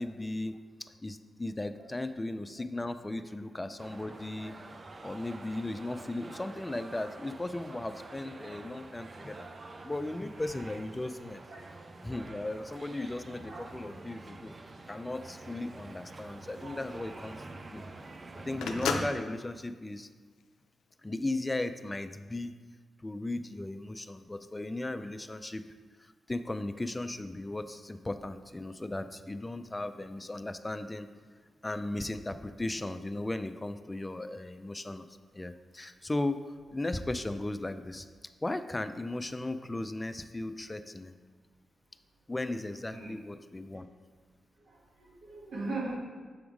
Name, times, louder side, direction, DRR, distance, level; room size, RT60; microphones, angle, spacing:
voice 1, 0.0-4.6 5.0-9.5 9.8-11.4 12.0-14.5 14.9-17.4 17.7-17.8 18.4-20.1 21.0-22.5 23.0-25.7 26.0-31.1 31.6-35.1 35.3-36.4 36.7-38.1 38.4-41.1 42.3-43.9, left 2 dB, 20° left, 10 dB, 0.4 m, -36 dB
sound 1, 3.8-19.1, right 2 dB, 45° right, 0.5 m, -47 dB
voice 2, 13.3-13.9 42.9-43.1 44.6-46.0, right 2 dB, 75° right, -3 dB, 1.4 m, -40 dB
Telephone, 15.7-20.9, left 5 dB, 90° left, 0.4 m, -38 dB
7.1 x 3.6 x 4.7 m, 1.5 s
supercardioid pair, 50°, 0 cm